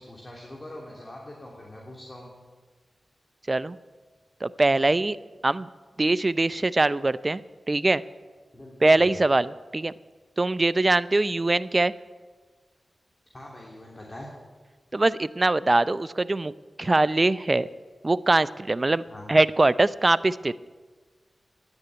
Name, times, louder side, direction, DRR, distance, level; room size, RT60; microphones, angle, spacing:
voice 1, 0.0-2.3 8.5-9.2 13.3-14.3 19.1-19.3, left 1 dB, 35° left, -2 dB, 2.9 m, -42 dB
voice 2, 4.4-5.2 5.4-5.7 6.0-7.4 7.7-8.0 8.8-9.9 10.4-11.9 14.9-16.5 16.8-17.7 18.0-19.0 19.3-20.6, right 2 dB, 35° right, 17 dB, 0.5 m, -22 dB
10.5 x 9.8 x 8.7 m, 1.4 s
cardioid pair, 40°, 0 cm